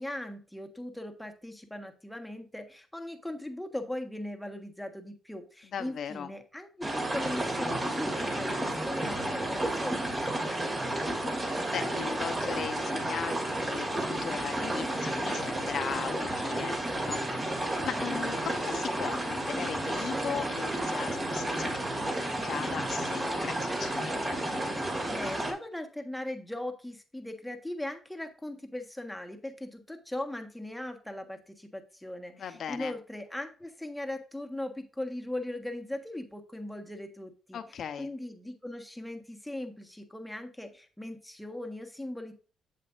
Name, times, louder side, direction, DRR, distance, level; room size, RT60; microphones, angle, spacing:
voice 1, 0.0-10.1 25.1-37.6 38.0-42.3, left 1 dB, 5° left, 5 dB, 1.4 m, -39 dB
voice 2, 5.7-6.3 10.7-24.4 32.3-32.9 37.5-38.1, left 8 dB, 60° left, 9 dB, 0.9 m, -38 dB
sound 1, 6.8-25.5, right 1 dB, 25° right, 2.3 m, -32 dB
7.6 x 7.5 x 2.6 m, 0.37 s
cardioid pair, 90°, 0 cm